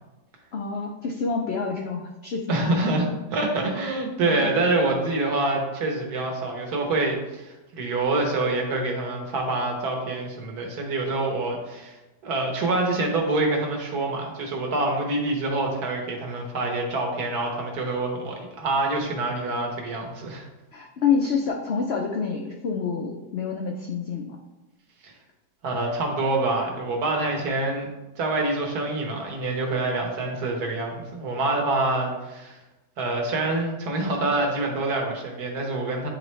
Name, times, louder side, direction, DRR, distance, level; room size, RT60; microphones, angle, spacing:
voice 1, 0.5-3.1 4.2-4.5 20.7-24.4, left 5 dB, 90° left, 1 dB, 0.5 m, -28 dB
voice 2, 2.5-12.0 12.2-20.4 25.6-27.9 28.2-32.6 33.0-36.1, right 2 dB, 65° right, 1 dB, 1.5 m, -26 dB
9.4 x 3.2 x 3.1 m, 1.0 s
omnidirectional pair, 1.8 m